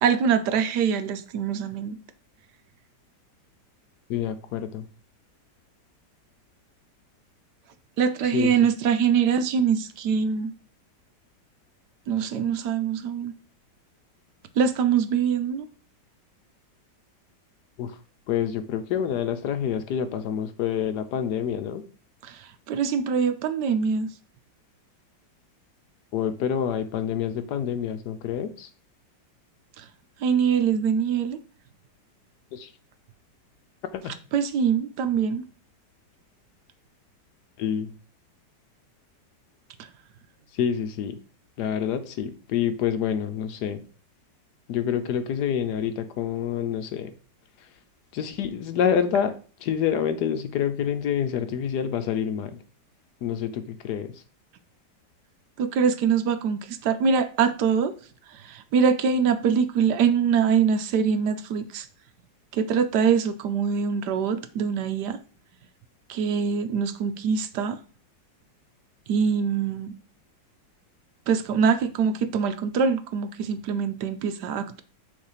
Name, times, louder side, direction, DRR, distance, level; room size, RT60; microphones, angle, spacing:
voice 1, 0.0-2.0 8.0-10.5 12.1-13.3 14.6-15.6 22.2-24.1 29.8-29.9 30.2-31.4 34.3-35.4 55.6-57.9 58.3-61.9 62.5-65.2 66.1-67.8 69.1-69.9 71.3-74.8, right 6 dB, 75° right, 1.2 m, -24 dB
voice 2, 4.1-4.8 8.3-8.5 17.8-17.9 18.3-21.8 26.1-28.7 32.5-32.7 33.9-34.1 37.6-37.9 40.5-41.2 41.6-43.8 44.7-47.1 48.1-49.3 49.6-52.6 53.2-54.1, left 8 dB, 70° left, 1.1 m, -27 dB
6.7 x 3.2 x 5.6 m
omnidirectional pair, 2.0 m